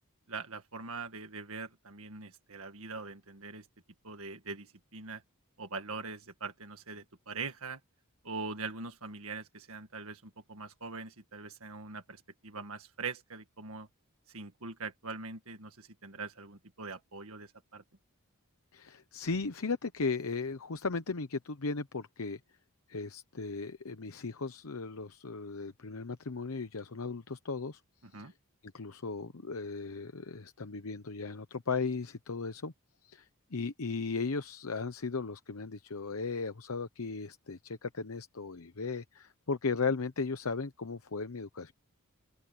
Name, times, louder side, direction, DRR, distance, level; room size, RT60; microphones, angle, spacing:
voice 1, 0.3-3.7 4.0-5.2 5.6-7.8 8.2-13.9 14.3-17.8 28.0-28.3, right 4 dB, 65° right, 1.8 m, -42 dB
voice 2, 18.7-22.4 22.9-27.8 28.1-28.3 28.6-32.7 33.0-41.7, left 4 dB, 70° left, 0.9 m, -36 dB
open air
head